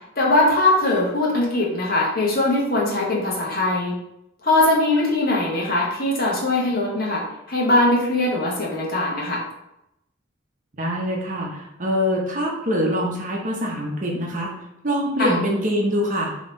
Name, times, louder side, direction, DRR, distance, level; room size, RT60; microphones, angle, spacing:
voice 1, 0.2-4.0 4.4-9.4 15.2-15.4, left 2 dB, 45° left, -3 dB, 1.2 m, -21 dB
voice 2, 10.8-14.5 14.8-16.3, equal, 40° right, -2 dB, 0.8 m, -24 dB
3.9 x 3.0 x 3.9 m, 0.83 s
head